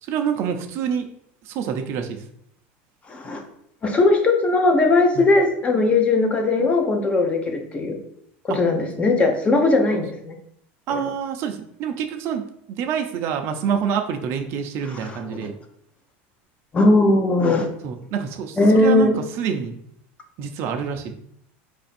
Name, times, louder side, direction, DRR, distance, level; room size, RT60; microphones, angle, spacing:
voice 1, 0.0-1.1 1.4-2.2 5.1-5.3 8.5-8.6 9.9-10.0 10.9-15.6 17.8-19.8 20.4-21.1, right 7 dB, 45° right, 5 dB, 0.5 m, -27 dB
voice 2, 3.1-3.4 3.8-8.0 8.4-10.3 10.9-11.1 15.4-15.5 16.7-17.7 18.6-19.2, left 2 dB, 20° left, 4 dB, 0.7 m, -19 dB
4.9 x 2.6 x 4.2 m, 0.72 s
supercardioid pair, 140°, 6 cm